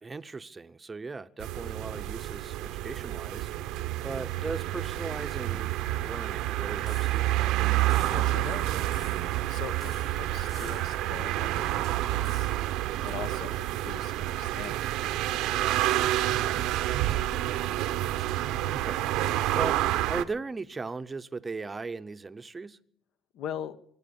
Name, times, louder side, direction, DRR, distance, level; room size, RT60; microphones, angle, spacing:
voice 1, 0.0-3.5 4.0-5.7 6.0-7.5 15.5-19.0 19.3-19.8 20.1-22.8, right 4 dB, 20° right, 13 dB, 0.7 m, -38 dB
sound 1, 1.4-20.3, right 15 dB, 90° right, 0.8 m, -29 dB
sound 2, 6.9-7.5 7.9-8.5 8.9-9.5 9.8-11.1 12.2-12.8, left 5 dB, 45° left, 5.3 m, -51 dB
voice 2, 8.0-8.8 9.5-12.5 13.0-14.8 23.3-23.8, left 9 dB, 70° left, 13 dB, 1.0 m, -41 dB
23.5 x 8.5 x 7.0 m, 0.66 s
cardioid pair, 140°, 0 cm